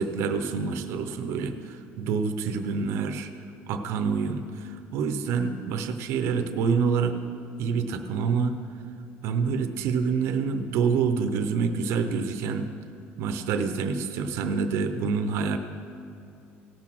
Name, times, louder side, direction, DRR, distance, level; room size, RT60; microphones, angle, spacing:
voice 1, 0.0-3.3 3.7-7.2 7.6-8.6 9.2-12.7 13.2-15.6, right 5 dB, 70° right, 7 dB, 0.7 m, -27 dB
17.5 x 6.1 x 6.1 m, 2.7 s
cardioid pair, 145°, 5 cm